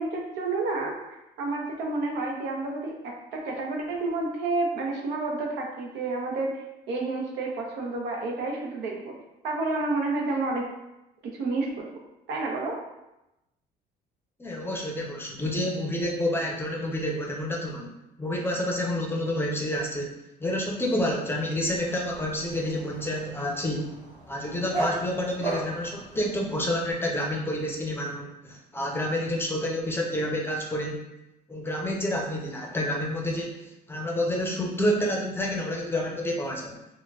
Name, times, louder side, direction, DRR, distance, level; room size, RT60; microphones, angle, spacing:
voice 1, 0.0-6.6 6.9-9.1 9.4-10.7 11.2-12.0 12.3-12.8, right 3 dB, 85° right, 0 dB, 0.7 m, -30 dB
voice 2, 14.4-17.9 18.2-20.1 20.4-23.9 24.3-31.0 31.5-36.8, left 1 dB, 15° left, -1 dB, 0.6 m, -29 dB
Dog, 21.6-26.9, right 2 dB, 45° right, 1.5 m, -37 dB
4.3 x 2.2 x 2.4 m, 0.92 s
cardioid pair, 110°, 17 cm